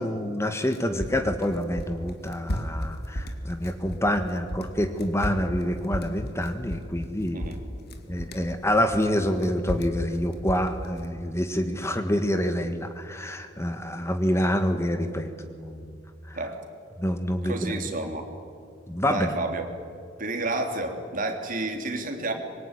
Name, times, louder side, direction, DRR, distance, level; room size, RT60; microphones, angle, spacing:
voice 1, 0.0-7.4 8.1-16.0 16.3-16.4 17.0-17.7 18.9-19.3, equal, 15° left, 7 dB, 1.5 m, -27 dB
sound 1, 0.5-4.2 4.5-7.1 7.4-8.5 8.9-11.1, equal, 55° left, 2.4 m, -33 dB
voice 2, 17.4-18.3 19.1-19.6 20.2-22.3, right 2 dB, 45° right, 4 dB, 3.4 m, -30 dB
25.0 x 22.5 x 9.9 m, 2.4 s
head